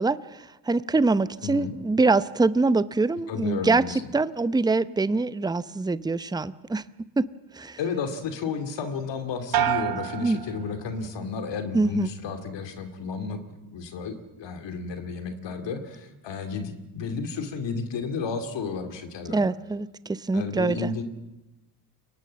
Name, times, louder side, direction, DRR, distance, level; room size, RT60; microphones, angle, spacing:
voice 1, 0.0-6.8 7.2-7.3 7.5-7.8 10.1-10.4 11.7-12.1 19.3-20.9, right 3 dB, 10° right, 16 dB, 0.7 m, -24 dB
voice 2, 1.4-1.7 3.3-4.0 7.8-13.4 13.7-19.4 20.3-21.0, left 5 dB, 60° left, 8 dB, 2.6 m, -32 dB
sound 1, 9.5-11.3 11.7-12.2, right 11 dB, 45° right, 1.2 m, -30 dB
23.0 x 18.5 x 7.5 m, 1.0 s
hypercardioid pair, 65°, 48 cm